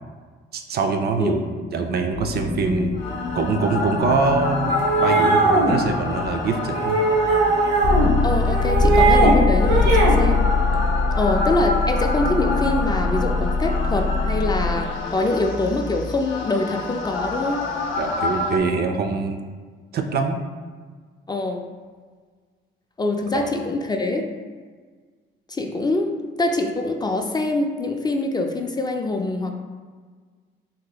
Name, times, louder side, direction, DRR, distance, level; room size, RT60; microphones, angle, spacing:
voice 1, 0.5-1.4 1.7-3.0 3.3-7.0 10.7-10.8 18.0-19.4 19.9-20.4 23.3-23.5, right 4 dB, 55° right, 6 dB, 0.4 m, -23 dB
sound 1, 2.1-18.6, left 4 dB, 75° left, 0.5 m, -23 dB
sound 2, 4.7-5.8 6.7-8.1 8.4-9.3 9.6-10.2, right 3 dB, 80° right, 0.8 m, -19 dB
voice 2, 8.2-10.5 11.1-17.7 21.3-21.6 23.0-24.2 25.5-26.1 26.4-29.6, left 2 dB, 20° left, 3 dB, 0.3 m, -24 dB
2.8 x 2.8 x 3.8 m, 1.5 s
cardioid pair, 90°, 20 cm